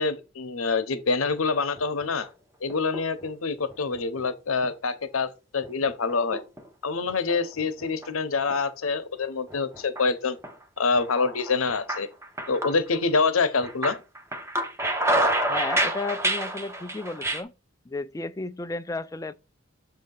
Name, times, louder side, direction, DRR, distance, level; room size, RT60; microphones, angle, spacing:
voice 1, 0.0-2.3 2.6-6.4 6.8-10.4 10.8-12.1 12.5-14.0, left 4 dB, 90° left, 0.8 m, -26 dB
sound 1, 1.6-2.3 2.7-3.3 3.7-4.3 4.6-4.7 5.6-6.7 7.1-8.1 8.5-8.6 9.5-10.0 10.4-10.6 11.0-13.3 13.6-17.4, right 1 dB, 15° right, 0.8 m, -29 dB
voice 2, 15.4-17.5 17.9-19.3, left 3 dB, 15° left, 0.3 m, -33 dB
7.4 x 2.8 x 5.3 m
head